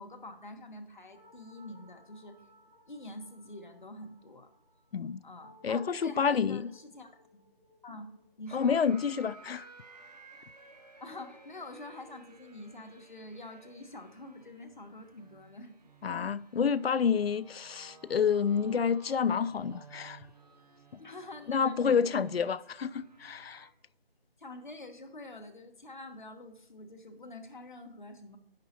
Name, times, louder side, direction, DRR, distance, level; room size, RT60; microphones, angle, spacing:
voice 1, 0.0-2.4 2.9-4.5 5.2-7.4 7.8-8.1 8.4-8.8 11.0-15.7 21.0-22.5 24.4-28.4, left 2 dB, 50° left, 1.3 m, -46 dB
sound 1, 1.1-9.9, left 1 dB, 15° left, 3.2 m, -59 dB
voice 2, 5.6-6.6 8.5-9.6 16.0-20.2 21.5-23.7, left 6 dB, 75° left, 0.5 m, -29 dB
sound 2, 8.5-23.7, right 3 dB, 40° right, 1.1 m, -56 dB
10.5 x 7.3 x 2.8 m
figure-of-eight pair, 175°, 30 cm